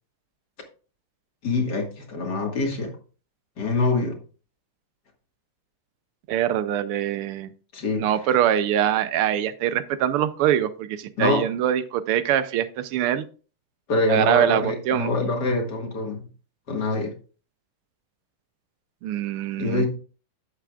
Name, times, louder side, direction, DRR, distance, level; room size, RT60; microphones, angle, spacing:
voice 1, 1.4-3.0 3.6-4.2 7.7-8.1 11.2-11.4 13.9-16.2 16.7-17.1 19.6-19.9, left 3 dB, 50° left, 2 dB, 2.2 m, -25 dB
voice 2, 6.3-7.5 8.0-13.3 14.1-15.1 19.0-19.9, right 10 dB, 85° right, 13 dB, 1.6 m, -23 dB
11.0 x 8.3 x 2.4 m, 0.37 s
omnidirectional pair, 2.4 m